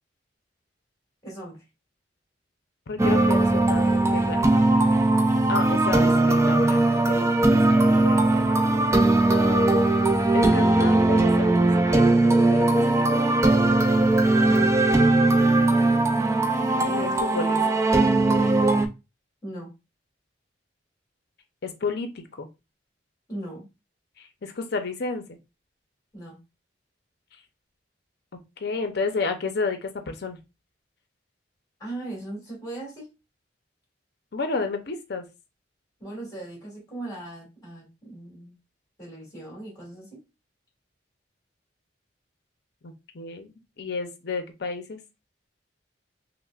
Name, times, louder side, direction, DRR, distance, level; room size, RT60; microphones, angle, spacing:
voice 1, 1.2-1.6 14.5-14.8 19.4-19.7 23.3-23.7 26.1-26.4 31.8-33.1 36.0-38.6 39.0-40.2, right 1 dB, 20° left, -2 dB, 1.9 m, -38 dB
voice 2, 2.9-4.8 5.5-8.2 9.3-13.1 16.7-17.8 21.6-22.5 24.2-25.4 28.6-30.4 34.3-35.3 42.8-43.5 43.8-45.0, left 4 dB, 60° left, 6 dB, 0.6 m, -32 dB
sound 1, 3.0-18.9, right 2 dB, 15° right, 0.4 m, -20 dB
5.7 x 2.1 x 2.3 m, 0.26 s
head